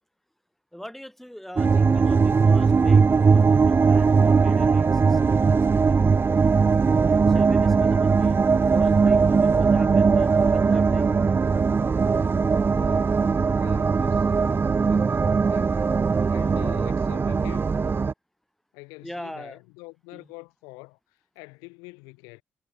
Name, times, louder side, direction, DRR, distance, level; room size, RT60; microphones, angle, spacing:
voice 1, 0.7-6.7 7.3-8.4 8.7-11.1 16.4-16.6 19.0-19.6 20.1-20.2, equal, 5° left, 3.1 m, -41 dB
sound 1, 1.6-18.1, right 5 dB, 40° right, 0.7 m, -20 dB
voice 2, 12.6-15.8 16.3-17.8 18.7-22.4, left 29 dB, 85° left, 7.5 m, -46 dB
hypercardioid pair, 45°, 6 cm